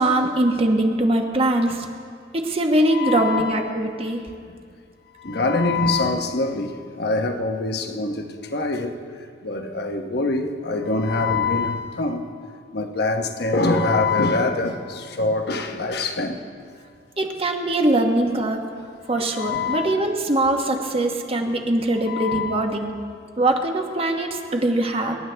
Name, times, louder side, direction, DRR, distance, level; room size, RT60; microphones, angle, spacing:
voice 1, 0.0-1.8 2.3-4.2 17.2-18.6 19.1-23.0 23.4-25.2, right 1 dB, 30° right, 1.2 m, -22 dB
voice 2, 2.9-3.6 4.5-4.6 5.2-9.0 9.4-12.3 12.7-16.4 19.4-19.9 22.1-22.6, left 3 dB, 55° left, 1.1 m, -24 dB
26.5 x 11.0 x 3.4 m
head